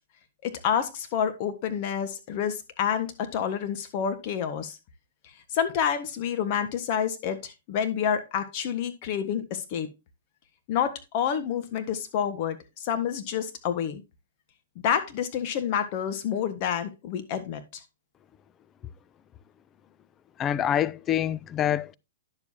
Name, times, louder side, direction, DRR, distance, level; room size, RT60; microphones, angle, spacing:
voice 1, 0.4-4.8 5.5-9.9 10.7-14.0 14.8-17.8, left 8 dB, 45° left, 1.5 m, -28 dB
voice 2, 20.4-21.9, left 10 dB, 20° left, 0.4 m, -26 dB
10.5 x 7.2 x 2.8 m
hypercardioid pair, 145°, 0 cm